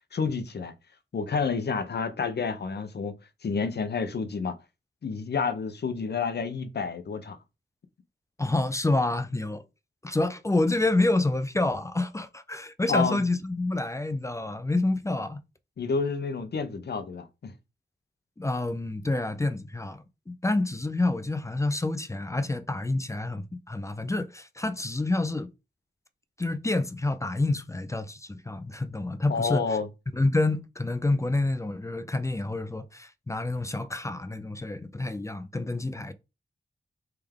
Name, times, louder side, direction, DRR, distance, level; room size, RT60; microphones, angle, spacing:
voice 1, 0.1-0.7 1.1-3.2 3.4-4.6 5.0-7.4 12.9-13.2 15.8-17.5 29.3-29.9, left 5 dB, 60° left, 0.6 m, -29 dB
voice 2, 8.4-9.6 10.0-15.4 18.4-25.5 26.4-29.8 30.1-36.1, left 2 dB, 15° left, 0.4 m, -28 dB
3.4 x 3.4 x 3.4 m
wide cardioid pair, 110°, 19 cm